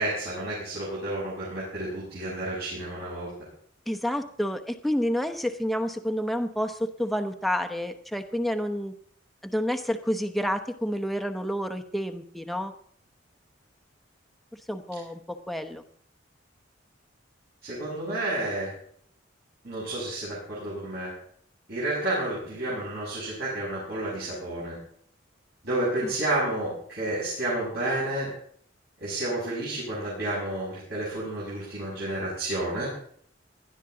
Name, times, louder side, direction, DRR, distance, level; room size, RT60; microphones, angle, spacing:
voice 1, 0.0-3.3 17.6-18.7 19.6-21.1 21.7-24.8 25.6-28.3 29.0-32.9, right 1 dB, 60° right, -8 dB, 6.7 m, -30 dB
voice 2, 3.9-8.9 9.4-12.7 14.7-15.8 26.0-26.1, equal, ahead, 6 dB, 0.9 m, -29 dB
19.0 x 12.0 x 3.9 m, 0.62 s
head